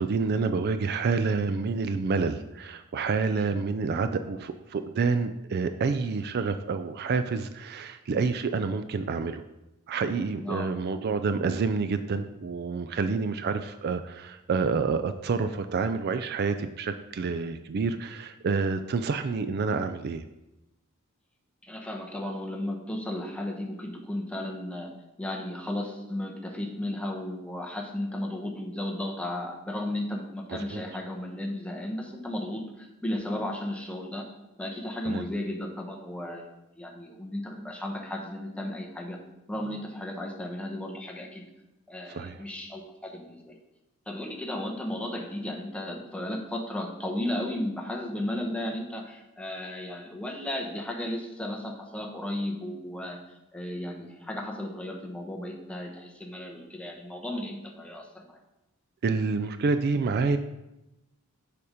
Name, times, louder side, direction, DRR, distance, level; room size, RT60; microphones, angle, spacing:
voice 1, 0.0-9.4 9.9-20.2 30.5-30.8 35.1-35.2 42.1-42.4 59.0-60.4, right 4 dB, 50° right, 10 dB, 0.4 m, -28 dB
voice 2, 3.3-3.6 10.4-10.7 21.6-24.9 25.2-39.2 39.5-41.5 41.9-43.6 44.1-58.4, left 1 dB, 5° left, 1 dB, 1.0 m, -34 dB
6.9 x 5.2 x 4.9 m, 0.94 s
head